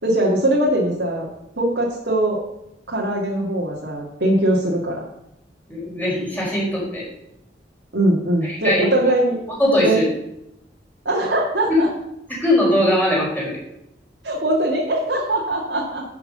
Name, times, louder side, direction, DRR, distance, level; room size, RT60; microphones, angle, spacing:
voice 1, 0.0-1.3 1.6-2.4 2.9-5.0 7.9-9.4 9.8-10.0 11.1-11.9 14.2-16.0, right 1 dB, 75° right, -4 dB, 1.9 m, -21 dB
voice 2, 5.7-7.0 8.5-8.8 9.6-10.0 11.7-11.8 12.3-13.6, left 1 dB, 10° left, -6 dB, 4.8 m, -20 dB
11.0 x 5.9 x 6.6 m, 0.83 s
head